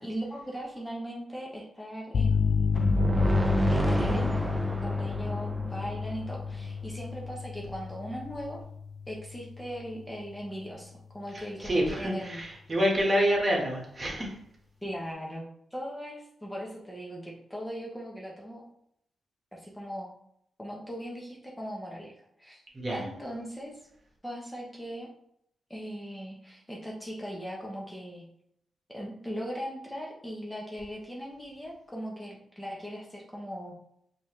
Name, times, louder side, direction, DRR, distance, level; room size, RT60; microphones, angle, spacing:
voice 1, 0.0-3.0 3.7-8.6 9.1-12.4 14.8-18.6 19.5-20.1 20.6-22.1 22.4-22.6 22.9-23.8 24.2-25.1 25.7-28.2 28.9-33.7, equal, 10° left, -2 dB, 0.9 m, -39 dB
sound 1, 2.1-9.9, left 6 dB, 60° left, 0.4 m, -30 dB
sound 2, 2.7-6.5, right 1 dB, 10° right, 0.5 m, -28 dB
voice 2, 11.3-14.4 22.7-23.1, equal, 35° right, -2 dB, 1.5 m, -27 dB
5.3 x 2.9 x 3.1 m, 0.72 s
cardioid pair, 85°, 0 cm